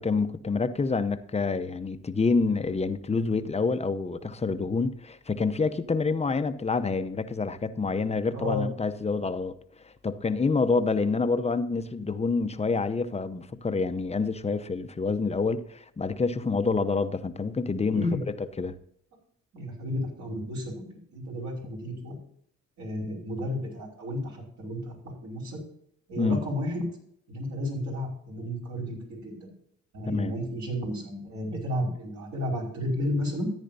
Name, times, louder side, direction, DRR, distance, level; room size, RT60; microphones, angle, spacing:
voice 1, 0.0-9.6 9.8-18.8 26.2-26.4 30.1-30.3, left 4 dB, 20° left, 0.7 m, -27 dB
voice 2, 8.3-8.7 17.9-18.2 19.5-20.8 21.1-22.1 22.8-24.9 25.2-25.6 26.1-26.8 27.3-29.5 29.9-33.5, left 1 dB, 65° right, 5.1 m, -32 dB
14.0 x 9.9 x 2.7 m
cardioid pair, 90°, 30 cm